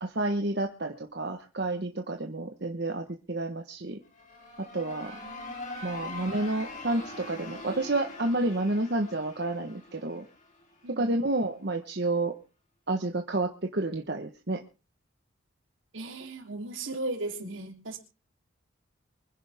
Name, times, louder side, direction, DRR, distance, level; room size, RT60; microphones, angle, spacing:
voice 1, 0.0-4.0 4.7-5.1 5.8-10.3 10.9-12.3 12.9-14.6, right 2 dB, 55° right, 3 dB, 1.3 m, -30 dB
sound 1, 4.0-10.8, left 2 dB, 40° left, 3.9 m, -43 dB
voice 2, 5.1-5.6 6.0-6.2 10.8-11.2 15.9-18.0, right 2 dB, 75° right, 2 dB, 3.5 m, -37 dB
25.0 x 10.5 x 3.6 m, 0.33 s
head